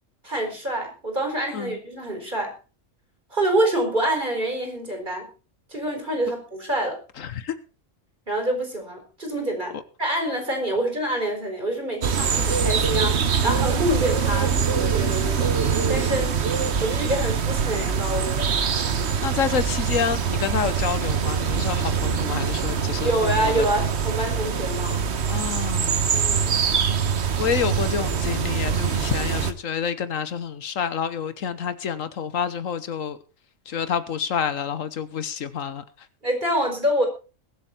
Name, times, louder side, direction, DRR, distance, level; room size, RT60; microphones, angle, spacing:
voice 1, 0.2-2.5 3.3-5.3 5.7-7.0 8.3-15.5 15.9-16.4 16.8-18.5 23.0-25.0 26.1-26.6 36.2-37.1, right 1 dB, 35° right, 4.5 m, -26 dB
voice 2, 7.2-7.5 19.2-23.7 25.3-26.1 27.4-33.2 33.7-35.8, left 7 dB, 75° left, 1.4 m, -28 dB
sound 1, 12.0-29.5, right 6 dB, 55° right, 1.3 m, -24 dB
22.5 x 7.8 x 4.4 m
omnidirectional pair, 1.4 m